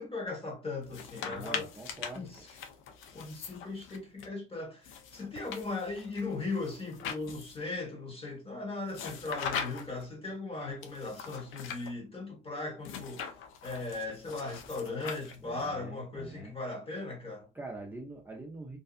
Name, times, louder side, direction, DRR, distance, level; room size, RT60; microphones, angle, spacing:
voice 1, 0.0-1.7 2.1-2.5 3.1-13.2 13.6-17.5, left 3 dB, 30° left, 1.3 m, -38 dB
sound 1, 0.8-4.3 4.8-7.7 8.9-10.1 10.8-11.9 12.8-15.6, left 7 dB, 85° left, 0.5 m, -41 dB
voice 2, 1.3-2.3 15.4-16.5 17.5-18.8, right 2 dB, 10° right, 0.6 m, -44 dB
2.7 x 2.3 x 2.3 m
cardioid pair, 90°, 20 cm